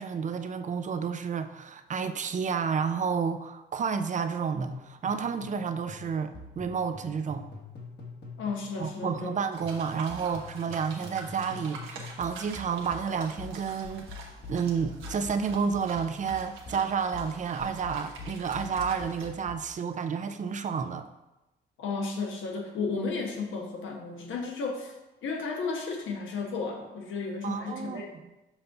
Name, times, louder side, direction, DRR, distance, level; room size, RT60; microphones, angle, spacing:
voice 1, 0.0-7.5 8.8-14.1 14.5-21.1 27.4-28.0, right 6 dB, 40° right, 9 dB, 0.5 m, -30 dB
sound 1, 4.7-5.6 5.9-9.4 9.6-19.7, left 4 dB, 55° left, 1.4 m, -45 dB
voice 2, 8.4-9.3 21.8-24.9 25.2-28.1, left 4 dB, 75° left, 2 dB, 1.2 m, -33 dB
sound 2, 9.5-19.3, right 4 dB, 90° right, 1.1 m, -46 dB
7.1 x 2.7 x 5.7 m, 0.99 s
cardioid pair, 90°, 20 cm